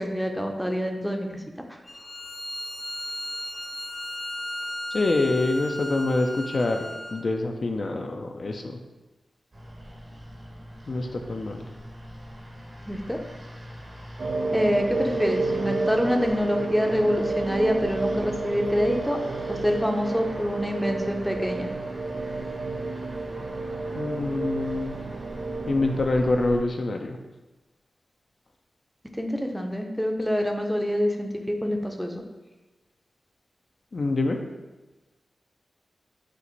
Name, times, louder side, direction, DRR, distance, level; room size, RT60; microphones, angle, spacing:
voice 1, 0.0-1.4 12.9-13.2 14.5-19.2 19.5-21.7 29.2-32.2, equal, ahead, 3 dB, 0.6 m, -26 dB
Bowed string instrument, 1.9-7.2, left 1 dB, 35° left, 0.7 m, -35 dB
voice 2, 4.9-8.8 10.9-11.7 23.9-25.0 25.7-27.2 33.9-34.4, left 2 dB, 60° left, 3 dB, 0.4 m, -26 dB
sound 1, 9.5-26.6, equal, 50° right, 1.2 m, -42 dB
sound 2, 14.2-26.0, right 3 dB, 70° right, 0.3 m, -30 dB
4.4 x 2.5 x 4.0 m, 1.1 s
cardioid pair, 50°, 0 cm